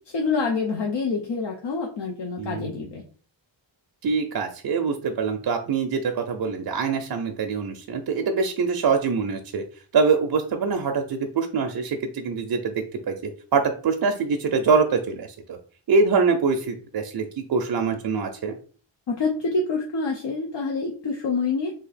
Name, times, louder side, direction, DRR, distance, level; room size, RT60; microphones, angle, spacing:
voice 1, 0.1-3.0 19.1-21.7, left 4 dB, 65° left, 0 dB, 0.7 m, -26 dB
voice 2, 2.4-2.9 4.0-9.6 9.9-13.2 13.5-15.6 15.9-18.5, right 5 dB, 55° right, 4 dB, 0.5 m, -24 dB
2.8 x 2.4 x 4.0 m, 0.41 s
wide cardioid pair, 145°, 47 cm